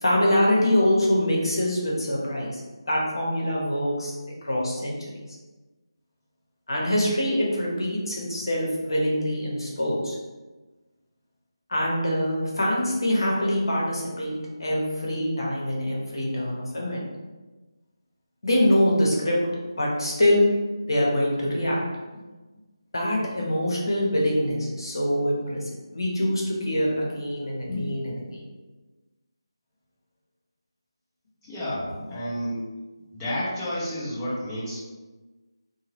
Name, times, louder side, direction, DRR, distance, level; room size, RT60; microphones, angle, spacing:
voice 1, 0.0-2.6 2.9-4.1 4.4-5.0 6.7-10.2 11.7-17.1 18.4-20.5 20.8-21.8 22.9-25.6 25.9-28.4, left 1 dB, 60° left, -3 dB, 1.0 m, -24 dB
voice 2, 31.4-32.6 33.1-34.8, equal, 10° left, -10 dB, 0.8 m, -30 dB
2.7 x 2.2 x 3.3 m, 1.2 s
figure-of-eight pair, 160°, 3 cm